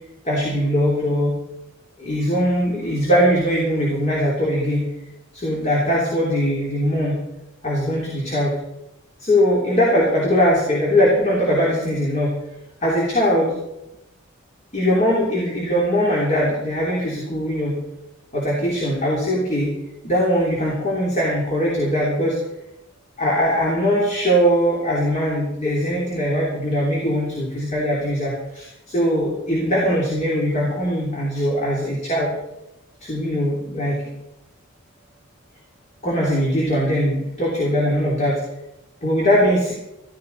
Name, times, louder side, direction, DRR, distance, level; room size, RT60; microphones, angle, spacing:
voice 1, 0.2-1.4 2.0-4.9 5.3-7.2 7.6-8.6 9.2-12.3 12.8-13.5 14.7-17.8 18.3-19.8 20.0-22.4 23.2-32.3 33.0-34.0 36.0-38.4 39.0-39.7, equal, 35° left, -4 dB, 3.3 m, -21 dB
15.5 x 13.0 x 4.1 m, 0.93 s
head